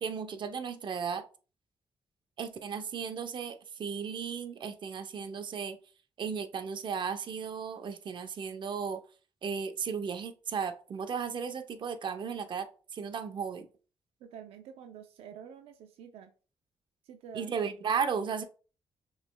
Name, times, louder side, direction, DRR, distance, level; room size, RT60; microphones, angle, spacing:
voice 1, 0.0-1.2 2.4-5.8 6.2-9.0 9.4-13.7 17.3-18.4, right 6 dB, 50° right, 8 dB, 0.6 m, -35 dB
voice 2, 14.2-16.3 17.0-17.5, right 8 dB, 90° right, 7 dB, 0.4 m, -48 dB
6.1 x 3.2 x 2.2 m, 0.37 s
cardioid pair, 80°, 10 cm